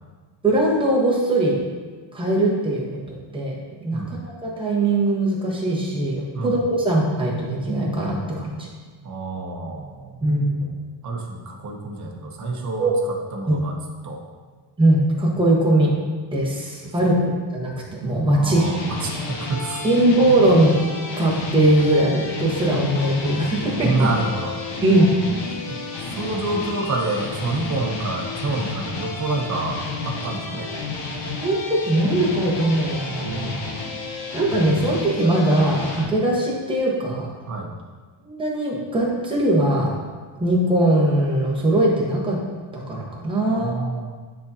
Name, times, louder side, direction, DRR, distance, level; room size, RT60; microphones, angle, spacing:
voice 1, 0.4-1.6 2.1-8.7 10.2-10.5 12.8-12.9 13.5-13.6 14.8-15.9 16.3-17.1 17.5-17.7 18.0-18.7 19.8-20.8 21.2-23.9 24.8-25.1 31.4-33.7 34.3-37.3 38.2-39.9 40.4-42.4 42.7-43.8, right 1 dB, 10° right, -4 dB, 1.3 m, -20 dB
voice 2, 9.0-10.3 10.6-10.7 11.0-13.8 14.0-14.2 16.8-16.9 18.3-19.8 23.8-24.7 25.7-30.7 37.5-37.7 43.5-44.1, right 2 dB, 35° right, 0 dB, 1.0 m, -28 dB
sound 1, 18.5-36.0, left 3 dB, 60° left, 1.2 m, -31 dB
9.5 x 4.1 x 2.8 m, 1.4 s
cardioid pair, 145°, 49 cm